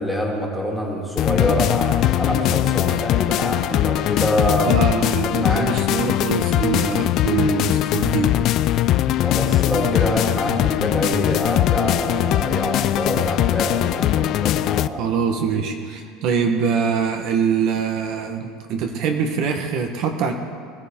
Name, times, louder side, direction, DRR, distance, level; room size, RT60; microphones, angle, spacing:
voice 1, 0.0-5.7 9.2-15.1 15.5-15.6, equal, ahead, -2 dB, 2.2 m, -25 dB
sound 1, 1.2-14.9, left 13 dB, 40° left, 0.3 m, -20 dB
voice 2, 4.7-8.4 14.2-14.3 15.0-20.3, right 6 dB, 50° right, 4 dB, 1.1 m, -23 dB
21.0 x 13.5 x 3.7 m, 2.1 s
cardioid pair, 160°, 0 cm